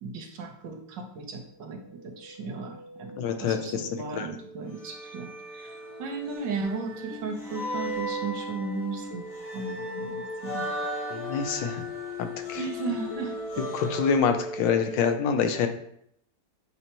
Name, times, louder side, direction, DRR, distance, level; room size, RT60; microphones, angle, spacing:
voice 1, 0.0-9.2 9.5-10.7 12.5-13.4, right 4 dB, 75° right, 2 dB, 1.6 m, -36 dB
sound 1, 1.9-15.1, left 1 dB, 50° left, 0.9 m, -40 dB
voice 2, 3.2-3.9 4.1-4.3 11.1-11.8 12.2-12.6 13.7-15.7, left 6 dB, 85° left, 6 dB, 1.4 m, -26 dB
sound 2, 4.7-14.2, right 1 dB, 35° left, 1.6 m, -37 dB
7.9 x 4.3 x 3.0 m, 0.71 s
omnidirectional pair, 2.0 m